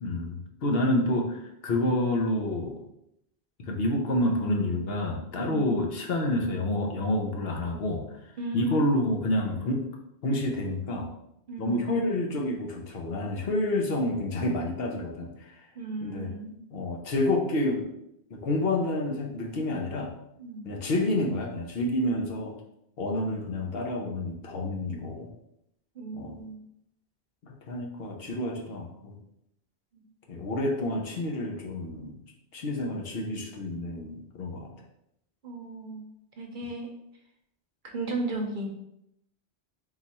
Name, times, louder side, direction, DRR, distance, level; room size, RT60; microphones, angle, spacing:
voice 1, 0.0-2.8 3.6-8.1 8.5-9.9 10.2-11.1 11.6-15.7 16.0-16.3 16.7-17.9 18.3-20.1 20.6-22.5 23.0-25.3 26.1-26.3 27.4-29.2 30.3-32.2 32.5-34.7, left 1 dB, 70° left, 1 dB, 0.9 m, -29 dB
voice 2, 5.4-5.7 8.4-8.8 11.5-11.8 15.8-16.6 20.4-20.7 26.0-26.6 29.9-30.0 35.4-36.1 36.4-36.9 37.9-38.7, right 2 dB, 55° right, 2 dB, 0.8 m, -35 dB
3.9 x 2.4 x 4.1 m, 0.79 s
omnidirectional pair, 1.1 m